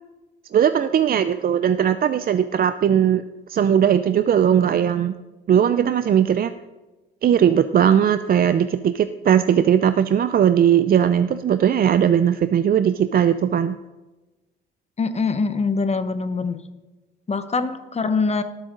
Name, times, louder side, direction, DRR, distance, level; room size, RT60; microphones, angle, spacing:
voice 1, 0.5-3.2 3.5-5.1 5.5-6.5 7.2-13.8, right 9 dB, 50° right, 11 dB, 0.5 m, -18 dB
voice 2, 15.0-16.6 17.3-18.4, left 4 dB, 35° left, 10 dB, 1.0 m, -23 dB
18.0 x 8.1 x 3.9 m, 1.1 s
cardioid pair, 90°, 20 cm